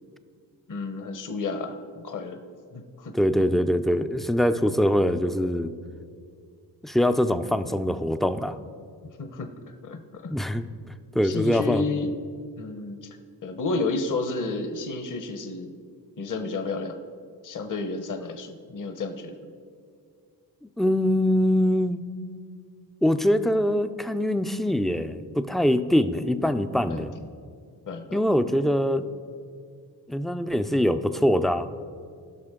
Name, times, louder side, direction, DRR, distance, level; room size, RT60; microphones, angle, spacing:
voice 1, 0.7-2.4 2.7-3.1 9.2-10.3 11.2-12.1 12.6-13.1 13.4-15.7 16.2-17.0 17.4-19.5 26.9-27.3 27.9-28.2, left 3 dB, 45° left, 7 dB, 1.0 m, -31 dB
voice 2, 3.1-5.7 6.8-8.6 10.3-10.7 11.1-11.8 20.6-22.0 23.0-27.1 28.1-29.1 30.1-31.7, equal, ahead, 10 dB, 0.4 m, -23 dB
16.0 x 6.0 x 3.7 m, 2.2 s
cardioid pair, 55°, 44 cm